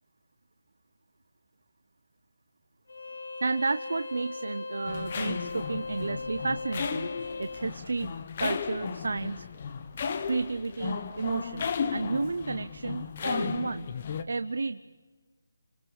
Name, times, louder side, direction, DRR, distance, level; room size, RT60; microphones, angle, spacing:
Bowed string instrument, 2.9-7.7, left 3 dB, 85° left, 6.3 m, -38 dB
voice 1, 3.4-7.1 7.4-8.1 8.4-9.4 10.3-13.9 14.3-14.8, right 3 dB, 65° right, 12 dB, 0.7 m, -32 dB
sound 1, 4.9-14.2, left 6 dB, 25° left, 1.0 m, -35 dB
28.0 x 25.0 x 7.2 m, 1.4 s
hypercardioid pair, 175°, 0 cm